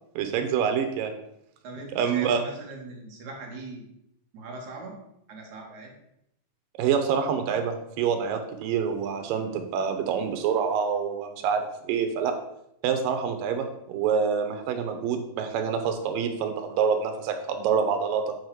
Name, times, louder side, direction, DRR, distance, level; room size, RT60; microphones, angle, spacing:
voice 1, 0.2-1.1 2.0-2.4 6.8-12.4 12.8-18.3, right 7 dB, 90° right, 7 dB, 2.6 m, -26 dB
voice 2, 1.6-3.9 4.3-5.0 5.3-5.9, right 3 dB, 65° right, 0 dB, 2.9 m, -40 dB
9.4 x 4.8 x 4.8 m, 0.77 s
omnidirectional pair, 3.9 m